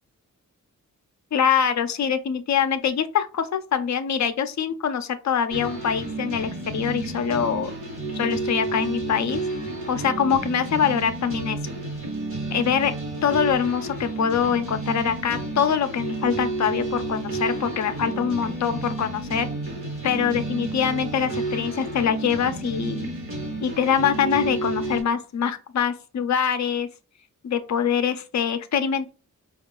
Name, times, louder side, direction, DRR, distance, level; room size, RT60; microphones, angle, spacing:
voice 1, 1.3-7.7 8.1-9.4 9.9-11.6 12.5-12.9 13.2-19.5 20.0-23.1 23.6-26.9 27.4-29.1, left 7 dB, 55° left, 9 dB, 0.5 m, -24 dB
sound 1, 5.5-25.0, right 2 dB, 40° right, 1.3 m, -31 dB
5.0 x 2.4 x 2.2 m, 0.33 s
wide cardioid pair, 135°, 33 cm